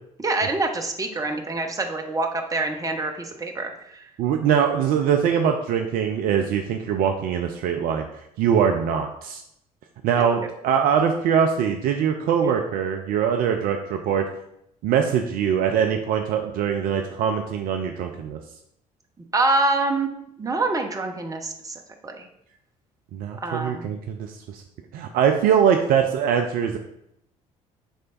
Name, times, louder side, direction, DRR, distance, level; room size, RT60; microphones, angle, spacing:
voice 1, 0.2-4.1 19.3-20.1 20.4-22.3 23.4-23.9, right 2 dB, 20° right, 3 dB, 0.8 m, -26 dB
voice 2, 4.2-8.1 8.4-9.4 10.0-14.3 14.8-18.4 23.1-24.6 24.9-26.8, right 8 dB, 50° right, 4 dB, 0.4 m, -22 dB
4.3 x 3.2 x 3.9 m, 0.78 s
figure-of-eight pair, 55°, 19 cm